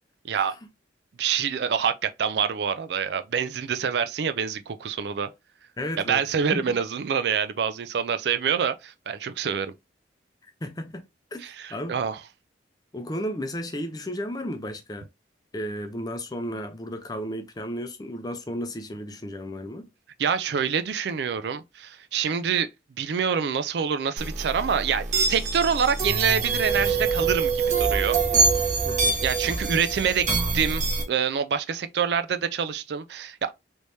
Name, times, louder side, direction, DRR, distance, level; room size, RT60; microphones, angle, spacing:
voice 1, 1.2-5.3 6.1-9.7 11.4-12.2 20.2-22.7 23.0-28.2 29.2-33.5, right 7 dB, 65° right, 0.4 m, -26 dB
voice 2, 5.8-6.2 6.5-6.6 10.6-11.0 11.3-11.4 11.7-12.0 12.9-15.0 15.5-19.8 28.8-29.2, equal, 20° left, 0.5 m, -33 dB
sound 1, 24.2-31.0, right 4 dB, 40° right, 0.9 m, -25 dB
3.3 x 3.2 x 2.7 m
head